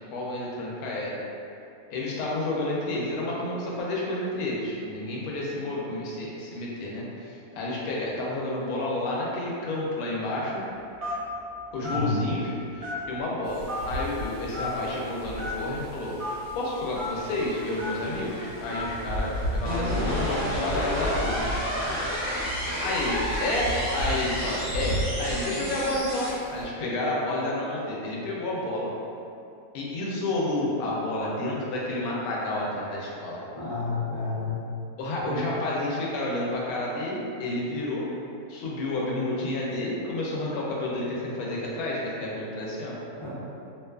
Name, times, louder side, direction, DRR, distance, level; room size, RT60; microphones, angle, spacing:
voice 1, 0.1-1.2 1.9-10.7 11.7-21.5 22.8-28.9 29.7-33.4 35.0-38.1 38.5-43.0, left 1 dB, 75° left, -4 dB, 1.0 m, -30 dB
Telephone, 11.0-11.3 11.8-12.0 12.8-13.2 13.7-13.8 14.5-14.7 15.4-15.5 16.2-16.3 17.0-17.1 17.8-18.0 18.7-18.9, left 1 dB, 65° right, 0.3 m, -33 dB
voice 2, 11.8-12.2 33.6-34.5 35.2-35.4 43.2-43.3, left 3 dB, 50° left, -12 dB, 0.3 m, -30 dB
Wind, 13.4-26.6, equal, 80° right, 1.1 m, -36 dB
sound 1, 17.2-26.3, equal, 40° right, 0.7 m, -31 dB
2.7 x 2.3 x 2.2 m, 2.6 s
omnidirectional pair, 1.7 m